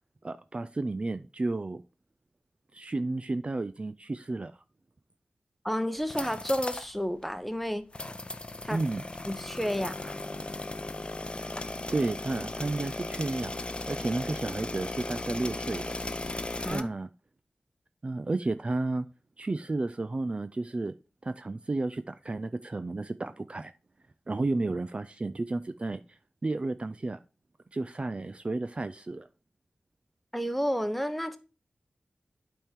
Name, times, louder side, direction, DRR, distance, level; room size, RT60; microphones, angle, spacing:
voice 1, 0.2-1.8 2.7-4.5 8.7-9.0 11.9-13.6 13.9-15.9 16.7-17.1 18.0-19.1 19.4-20.9 21.2-23.7 24.3-26.0 26.4-27.2 27.7-29.3, right 2 dB, 40° right, 0.4 m, -32 dB
voice 2, 5.6-7.8 8.6-8.8 9.3-10.1 16.6-16.9 30.3-31.4, equal, 5° left, 0.9 m, -31 dB
sound 1, 6.0-6.9 7.2-7.3 7.9-16.8, left 2 dB, 35° left, 0.6 m, -37 dB
8.7 x 3.7 x 4.4 m
cardioid pair, 55°, 3 cm